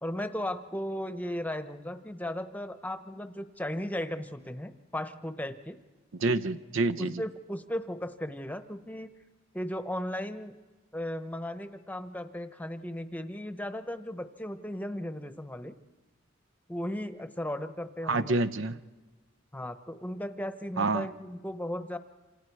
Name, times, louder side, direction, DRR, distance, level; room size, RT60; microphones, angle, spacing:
voice 1, 0.0-5.8 7.0-9.1 9.5-10.5 10.9-15.8 16.7-18.5 19.5-22.0, left 1 dB, 10° left, 9 dB, 0.9 m, -36 dB
voice 2, 6.2-7.2 18.1-18.8 20.8-21.1, right 3 dB, 75° right, 12 dB, 0.7 m, -27 dB
27.5 x 27.0 x 4.7 m, 1.3 s
head